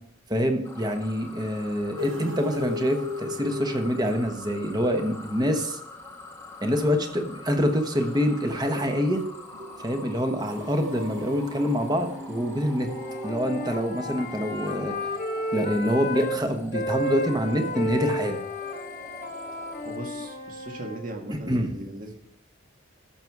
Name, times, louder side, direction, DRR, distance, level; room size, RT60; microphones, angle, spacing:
voice 1, 0.3-5.8 6.6-9.2 9.8-12.9 13.2-14.9 15.5-18.4 21.3-21.8, equal, 20° right, 6 dB, 1.1 m, -26 dB
sound 1, 0.6-20.0, left 2 dB, 15° left, 1.0 m, -45 dB
sound 2, 2.0-4.6 8.1-13.3, left 2 dB, 75° right, 0.8 m, -38 dB
Wind instrument woodwind instrument, 12.8-16.4 16.7-21.0, left 1 dB, 50° left, 1.3 m, -32 dB
voice 2, 19.8-22.2, right 1 dB, 45° right, 3 dB, 1.6 m, -38 dB
14.5 x 6.2 x 4.7 m, 0.76 s
head